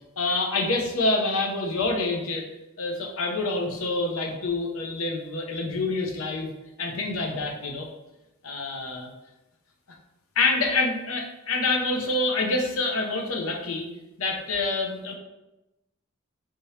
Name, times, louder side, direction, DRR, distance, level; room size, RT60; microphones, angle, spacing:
voice 1, 0.2-2.5 2.8-6.5 6.8-7.9 8.4-9.1 10.4-13.9 14.2-15.1, left 3 dB, 75° left, 2 dB, 0.8 m, -27 dB
4.7 x 3.7 x 2.8 m, 0.97 s
head